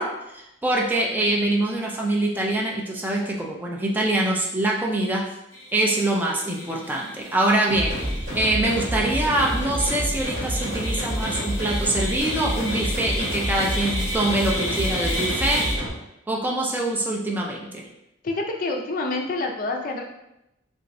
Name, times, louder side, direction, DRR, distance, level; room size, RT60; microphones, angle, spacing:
voice 1, 0.0-5.3 5.7-15.7 16.3-17.8, right 1 dB, 10° right, -1 dB, 0.4 m, -24 dB
sound 1, 5.5-15.7, left 1 dB, 15° left, 0.9 m, -33 dB
sound 2, 7.7-15.9, right 1 dB, 70° right, 1.2 m, -28 dB
voice 2, 18.2-20.0, left 2 dB, 50° left, 2 dB, 0.5 m, -27 dB
3.3 x 3.0 x 2.6 m, 0.86 s
head